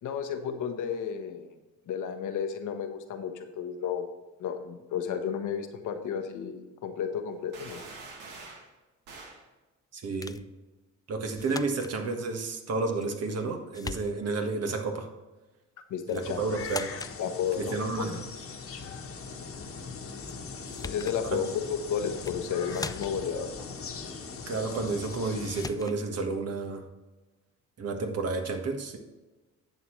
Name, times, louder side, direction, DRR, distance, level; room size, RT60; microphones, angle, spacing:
voice 1, 0.0-1.5 1.9-4.1 4.4-7.8 15.9-16.4 17.2-18.2 20.8-23.7, left 7 dB, 80° left, 7 dB, 1.2 m, -32 dB
sound 1, 7.5-8.7 9.1-9.4, right 3 dB, 85° right, 2.0 m, -45 dB
voice 2, 9.9-10.4 11.1-15.1 16.1-16.9 17.6-18.2 21.3-21.4 24.5-26.9 27.8-29.0, right 3 dB, 55° right, 4 dB, 1.6 m, -31 dB
sound 2, 10.2-10.5 11.4-12.0 13.0-13.5 13.7-14.4 16.1-16.3 16.6-17.2 20.3-20.4 20.7-21.2 22.1-22.4 22.7-23.3 25.0-25.2 25.5-26.0, left 4 dB, 15° left, 0.3 m, -40 dB
sound 3, 16.2-25.7, left 5 dB, 50° left, 1.3 m, -40 dB
10.5 x 7.8 x 3.2 m, 1.2 s
cardioid pair, 90°, 30 cm